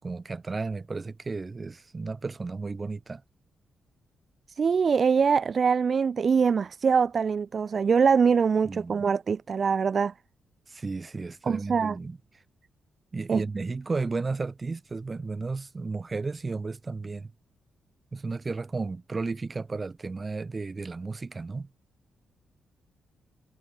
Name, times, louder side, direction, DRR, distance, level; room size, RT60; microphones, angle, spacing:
voice 1, 0.0-3.2 8.6-9.1 10.7-12.2 13.1-17.3 18.1-21.7, right 3 dB, 35° right, 7.0 m, -33 dB
voice 2, 4.6-10.1 11.5-12.0 13.3-13.4, right 6 dB, 55° right, 0.8 m, -23 dB
supercardioid pair, 50°, 0 cm